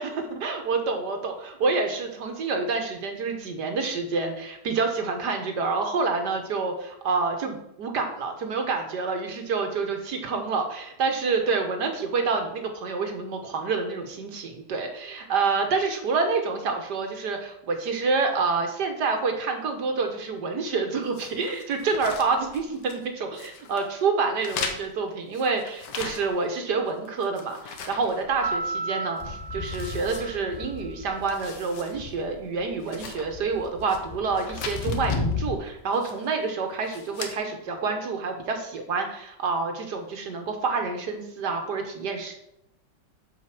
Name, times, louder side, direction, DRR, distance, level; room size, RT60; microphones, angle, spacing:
voice 1, 0.0-42.3, right 4 dB, 70° right, 4 dB, 1.8 m, -28 dB
sound 1, 21.1-23.1 23.3-23.9 24.4-26.6 26.9-28.8 29.2-29.3 29.6-30.8 31.1-32.0 32.3-32.4 32.8-34.0 34.3-35.2 35.9-36.4 36.8-37.3, left 5 dB, 80° left, 1.7 m, -39 dB
Piano, 28.4-31.2, right 3 dB, 55° right, 0.4 m, -33 dB
sound 2, 29.2-31.5 31.8-35.5, left 4 dB, 25° left, 0.8 m, -34 dB
7.7 x 5.4 x 6.0 m, 0.80 s
omnidirectional pair, 1.9 m